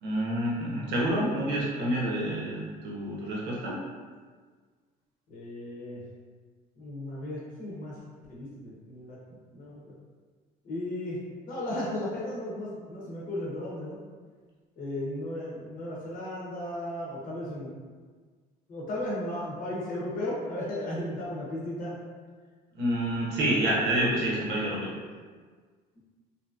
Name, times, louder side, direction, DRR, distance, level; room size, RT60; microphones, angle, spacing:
voice 1, 0.0-3.8 22.7-24.9, right 1 dB, 90° right, -4 dB, 0.8 m, -28 dB
voice 2, 5.3-6.0 6.8-8.0 8.3-9.2 9.5-9.8 10.6-11.2 11.5-14.0 14.8-17.7 18.7-22.0, left 1 dB, 55° left, -6 dB, 0.8 m, -35 dB
2.8 x 2.6 x 2.4 m, 1.5 s
cardioid pair, 110°, 17 cm